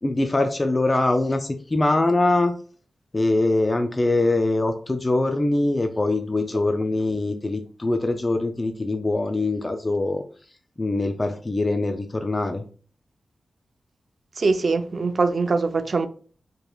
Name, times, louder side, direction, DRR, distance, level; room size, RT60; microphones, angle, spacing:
voice 1, 0.0-2.5 3.1-10.2 10.8-12.6, left 2 dB, 20° left, 0.3 m, -23 dB
voice 2, 14.4-16.1, right 4 dB, 45° right, 0.4 m, -22 dB
5.0 x 3.0 x 2.3 m
wide cardioid pair, 160°, 0 cm